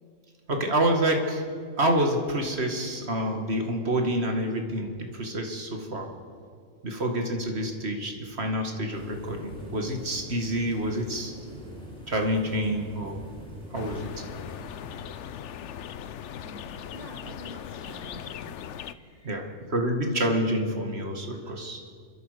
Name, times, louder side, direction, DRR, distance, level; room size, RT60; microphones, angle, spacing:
voice 1, 0.5-1.4 1.8-6.1 6.8-11.3 12.1-13.2 13.7-14.3 19.2-21.8, right 1 dB, 55° right, 3 dB, 2.3 m, -28 dB
sound 1, 8.9-15.0, equal, 5° left, 4.6 m, -44 dB
sound 2, 13.7-18.9, left 9 dB, 70° left, 1.0 m, -39 dB
voice 2, 16.4-19.6, right 1 dB, 25° right, 1 dB, 2.5 m, -48 dB
28.5 x 13.5 x 6.8 m, 2.2 s
omnidirectional pair, 1.3 m